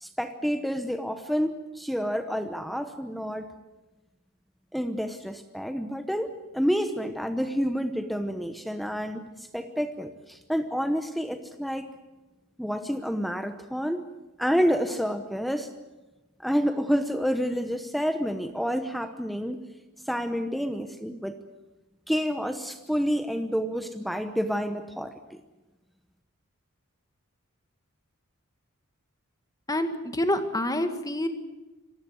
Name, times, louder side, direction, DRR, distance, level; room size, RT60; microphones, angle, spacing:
voice 1, 0.0-3.5 4.7-11.9 12.6-14.0 14.4-15.7 16.4-19.6 20.1-21.4 22.1-25.1, equal, ahead, 8 dB, 0.9 m, -29 dB
voice 2, 29.7-31.3, left 1 dB, 15° left, 8 dB, 1.7 m, -27 dB
26.5 x 16.5 x 8.0 m, 1.1 s
head